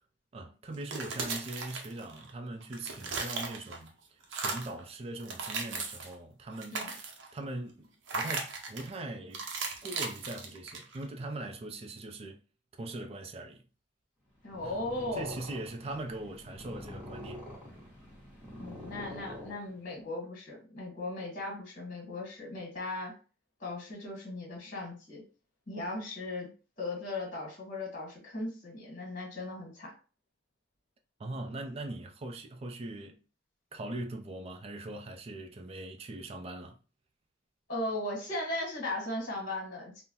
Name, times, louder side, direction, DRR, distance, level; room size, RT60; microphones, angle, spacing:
voice 1, 0.3-3.9 4.3-7.1 7.3-9.4 9.8-12.4 12.8-13.6 14.6-14.8 15.1-17.4 31.2-33.2 33.7-36.8, right 2 dB, 30° right, 0.4 m, -41 dB
sound 1, 0.7-2.3 2.6-3.9 4.2-4.8 5.2-6.2 6.5-7.3 8.1-8.9 9.3-11.0, right 4 dB, 75° right, 0.7 m, -37 dB
voice 2, 14.4-15.4 18.6-23.1 23.6-25.2 25.7-26.5 26.8-29.9 37.7-40.0, left 2 dB, 45° left, 1.4 m, -37 dB
Purr, 14.4-20.1, left 1 dB, 5° right, 1.1 m, -46 dB
3.6 x 2.1 x 2.8 m
head